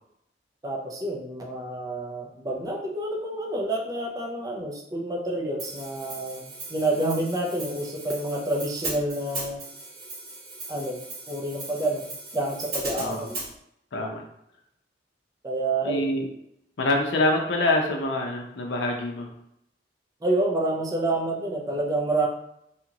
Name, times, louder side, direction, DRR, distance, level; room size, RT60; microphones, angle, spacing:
voice 1, 0.6-9.6 10.7-11.0 11.3-12.0 12.3-13.4 15.4-16.0 20.2-22.3, right 2 dB, 20° right, -1 dB, 0.5 m, -28 dB
Hi-hat, 5.6-13.5, right 2 dB, 55° right, 1.3 m, -37 dB
voice 2, 13.9-14.2 15.8-16.3 16.8-19.3, left 2 dB, 80° left, 0 dB, 0.6 m, -25 dB
2.8 x 2.4 x 2.8 m, 0.76 s
head